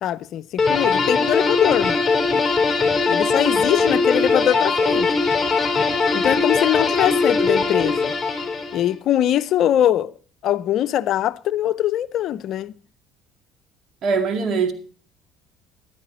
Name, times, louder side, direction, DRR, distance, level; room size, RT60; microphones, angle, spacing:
voice 1, 0.0-2.0 3.1-5.1 6.1-8.1 8.7-10.1 10.4-12.7, left 11 dB, 60° left, 0.5 m, -22 dB
sound 1, 0.6-8.9, left 4 dB, 15° left, 4.3 m, -20 dB
voice 2, 14.0-14.7, right 5 dB, 55° right, 2.1 m, -21 dB
14.0 x 12.0 x 4.3 m
supercardioid pair, 90°, 0 cm